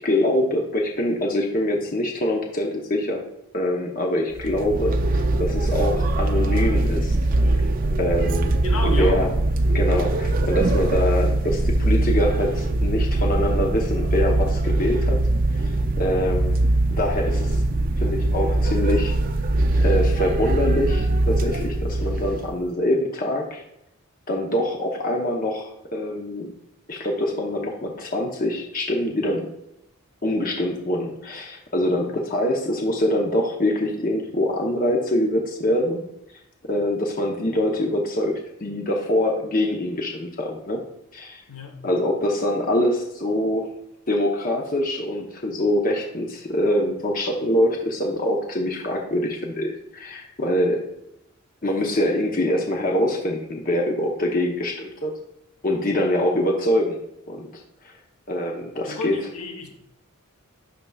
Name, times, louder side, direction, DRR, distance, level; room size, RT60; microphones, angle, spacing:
voice 1, 0.0-3.2 3.5-7.2 7.5-7.6 8.0-8.6 8.8-9.3 9.7-15.2 15.5-16.6 17.0-17.6 18.0-19.1 19.8-23.6 24.3-26.5 26.9-29.5 30.2-36.0 36.6-40.8 41.1-41.4 41.8-43.7 44.1-50.9 51.6-55.1 55.6-57.0 57.3-57.5 57.8-57.9 58.3-59.3, left 1 dB, 40° left, 0.8 m, -24 dB
sound 1, 4.3-22.6, right 2 dB, 40° right, 0.4 m, -22 dB
voice 2, 8.6-9.3 41.5-41.8 58.8-59.7, left 2 dB, 85° left, 1.1 m, -32 dB
11.0 x 3.9 x 2.3 m
head